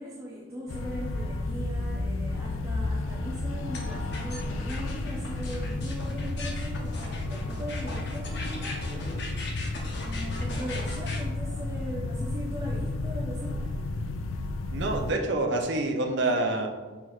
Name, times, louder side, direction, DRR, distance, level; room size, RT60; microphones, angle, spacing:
voice 1, 0.0-9.3 10.0-13.6, equal, 15° right, -6 dB, 0.6 m, -39 dB
sound 1, 0.7-15.1, left 2 dB, 80° left, 0.4 m, -32 dB
sound 2, 3.7-11.2, left 2 dB, 55° left, 0.8 m, -39 dB
voice 2, 14.7-16.7, right 2 dB, 60° right, 3 dB, 0.5 m, -27 dB
4.5 x 4.5 x 2.4 m, 1.3 s
head